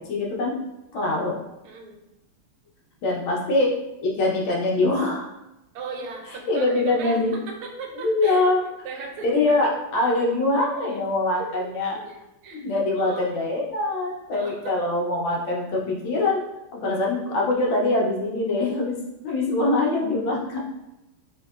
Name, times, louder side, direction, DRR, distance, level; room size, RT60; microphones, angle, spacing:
voice 1, 0.1-0.5 0.9-1.3 3.0-3.7 4.0-5.3 6.5-7.3 8.0-8.6 9.2-12.0 12.5-16.4 16.7-19.0 19.2-20.6, left 2 dB, 80° left, -2 dB, 1.5 m, -23 dB
voice 2, 1.6-2.0 5.7-8.4 8.8-9.3 9.6-9.7 10.9-11.0 11.4-11.7 12.0-12.7 12.9-13.3 14.3-14.8, right 4 dB, 85° right, 1 dB, 1.5 m, -37 dB
3.6 x 2.7 x 2.3 m, 0.92 s
omnidirectional pair, 2.3 m